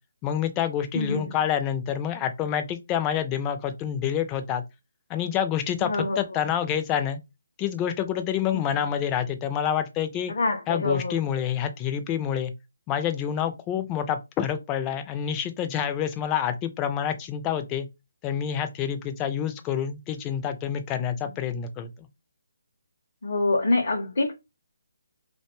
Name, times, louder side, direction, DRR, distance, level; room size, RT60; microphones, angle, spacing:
voice 1, 0.2-4.6 5.1-7.2 7.6-10.3 10.7-12.5 12.9-17.9 18.2-22.1, left 9 dB, 15° left, 0.3 m, -27 dB
voice 2, 0.9-1.3 5.8-6.2 10.3-11.2 23.2-24.3, left 2 dB, 65° left, 0.6 m, -25 dB
2.5 x 2.2 x 2.9 m
hypercardioid pair, 160°, 0 cm